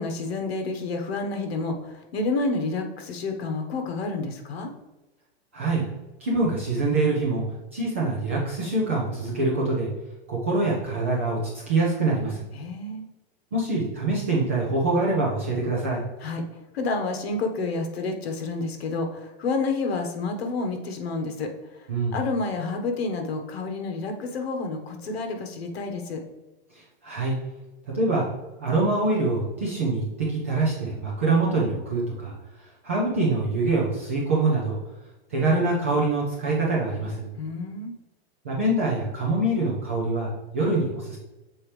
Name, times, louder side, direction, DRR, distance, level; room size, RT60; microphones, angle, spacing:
voice 1, 0.0-4.7 12.5-13.0 16.2-16.4 16.7-26.2 37.4-37.9, left 3 dB, 70° left, 5 dB, 1.3 m, -29 dB
voice 2, 6.2-7.4 7.7-9.9 10.3-12.5 13.5-16.0 21.9-22.1 26.7-27.3 27.9-28.2 28.6-32.3 32.8-34.8 35.3-37.3 38.4-41.2, right 2 dB, 15° right, -5 dB, 0.3 m, -24 dB
7.3 x 4.2 x 3.2 m, 1.1 s
supercardioid pair, 175°, 32 cm